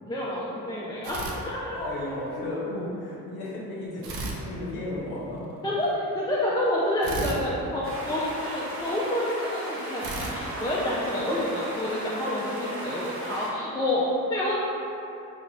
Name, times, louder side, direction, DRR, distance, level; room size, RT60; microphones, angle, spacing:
voice 1, 0.1-1.8 5.6-14.5, left 1 dB, 10° left, -7 dB, 0.3 m, -28 dB
sound 1, 1.0-2.2 4.0-5.4 7.0-8.7 10.0-11.6, right 2 dB, 75° right, 0.5 m, -36 dB
voice 2, 1.7-5.6, left 1 dB, 80° left, -6 dB, 0.7 m, -34 dB
sound 2, 7.8-13.5, right 1 dB, 35° right, 0.7 m, -36 dB
2.5 x 2.1 x 3.1 m, 2.8 s
supercardioid pair, 55°, 37 cm